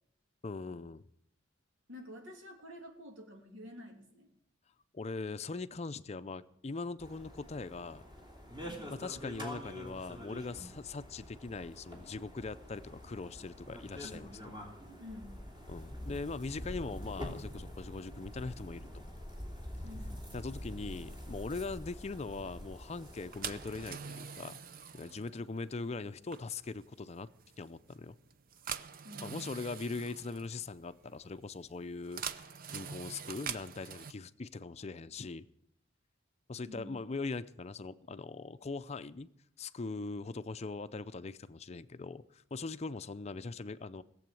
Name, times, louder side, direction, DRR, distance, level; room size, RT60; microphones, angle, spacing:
voice 1, 0.4-1.0 4.9-8.0 8.9-14.5 15.7-19.0 20.3-24.6 24.9-27.3 27.6-28.2 29.1-35.5 36.5-39.3 39.6-44.0, left 3 dB, 35° left, 13 dB, 0.5 m, -41 dB
voice 2, 1.9-4.3 8.6-8.9 14.0-14.3 15.0-15.5 19.8-20.2 29.0-29.4 36.7-37.0, left 1 dB, 85° right, 2 dB, 3.0 m, -49 dB
sound 1, 7.0-23.9, equal, 25° right, 3.1 m, -46 dB
sound 2, 23.0-34.1, right 7 dB, 50° right, 0.7 m, -45 dB
17.5 x 7.8 x 9.1 m, 0.73 s
head